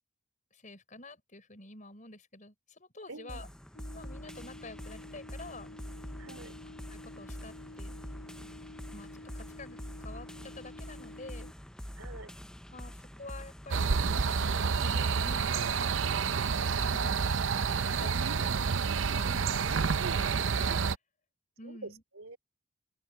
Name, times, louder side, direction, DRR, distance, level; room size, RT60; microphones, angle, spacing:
voice 1, 0.5-3.5 3.9-5.8 6.9-7.9 8.9-11.5 12.7-13.9 14.3-15.7 16.9-17.3 17.6-18.5 19.0-20.7 21.6-22.0, left 2 dB, 40° left, 6.2 m, -49 dB
voice 2, 3.1-3.5 6.2-6.5 12.0-12.3 21.6-22.4, right 3 dB, 85° right, 3.0 m, -47 dB
sound 1, 3.3-15.3, equal, 5° left, 0.6 m, -45 dB
sound 2, 3.7-11.5, left 2 dB, 75° left, 3.5 m, -50 dB
sound 3, 13.7-20.9, right 5 dB, 65° right, 0.6 m, -29 dB
open air
head